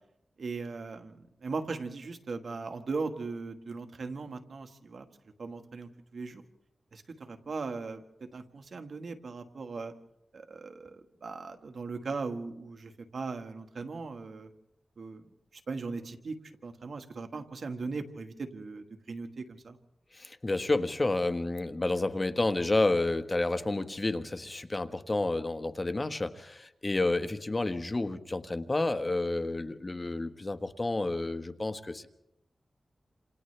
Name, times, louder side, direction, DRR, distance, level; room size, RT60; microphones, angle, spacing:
voice 1, 0.4-5.1 5.4-6.4 6.9-9.9 10.3-14.5 15.0-15.2 15.5-16.4 16.6-19.8, right 4 dB, 70° right, 7 dB, 1.6 m, -39 dB
voice 2, 20.1-32.1, left 2 dB, 35° left, 9 dB, 1.3 m, -30 dB
28.5 x 27.0 x 3.4 m, 0.84 s
cardioid pair, 55°, 0 cm